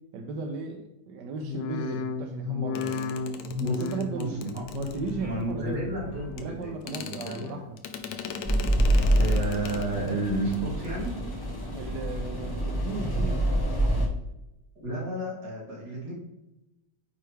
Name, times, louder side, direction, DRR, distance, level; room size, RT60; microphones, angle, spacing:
voice 1, 0.1-3.0 3.7-5.9 6.4-7.8 11.7-14.1, right 3 dB, 85° right, 2 dB, 1.3 m, -36 dB
sound 1, 1.4-6.7 7.0-7.6 8.1-8.8 9.2-9.9 10.3-10.9 11.4-12.0 12.5-12.6, left 5 dB, 90° left, 1.3 m, -36 dB
sound 2, 2.8-5.5 6.4-6.5 6.8-10.1 10.4-10.6 10.8-11.1, left 6 dB, 70° left, 1.1 m, -40 dB
voice 2, 4.1-4.6 5.2-7.5 9.2-11.2 14.8-16.1, right 2 dB, 65° right, -5 dB, 2.8 m, -32 dB
sound 3, 8.4-14.1, right 1 dB, 15° left, 0.8 m, -26 dB
9.2 x 3.2 x 3.3 m, 0.91 s
omnidirectional pair, 1.9 m